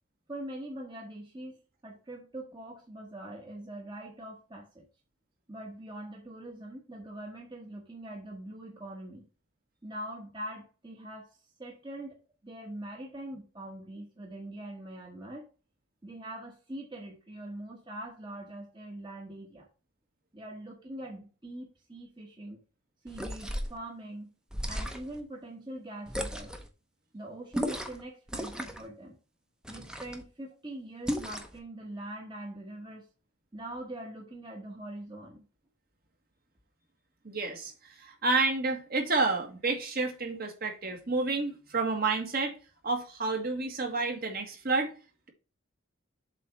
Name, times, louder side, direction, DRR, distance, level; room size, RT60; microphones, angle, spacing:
voice 1, 0.3-4.8 5.5-9.3 9.8-11.3 11.6-12.2 12.4-15.4 16.0-19.7 20.3-22.6 23.0-24.3 24.7-26.5 27.1-29.2 29.7-33.1 33.5-35.5, right 1 dB, 25° right, 1.1 m, -43 dB
sound 1, 23.1-23.8 24.5-25.2 26.1-26.7 27.5-28.0 28.3-28.9 29.6-30.2 31.1-31.6, equal, 5° right, 0.8 m, -35 dB
voice 2, 37.2-42.6 42.8-44.9, right 3 dB, 50° right, 1.7 m, -30 dB
7.5 x 3.3 x 5.7 m
head